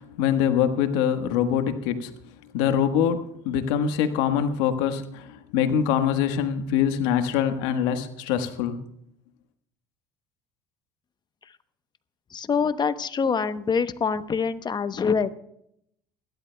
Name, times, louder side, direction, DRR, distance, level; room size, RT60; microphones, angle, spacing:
voice 1, 0.0-2.1 2.5-8.8, left 8 dB, 80° left, 8 dB, 1.4 m, -24 dB
voice 2, 12.3-15.3, left 6 dB, 30° left, 12 dB, 0.9 m, -25 dB
28.5 x 12.0 x 2.3 m, 0.74 s
supercardioid pair, 80°, 14 cm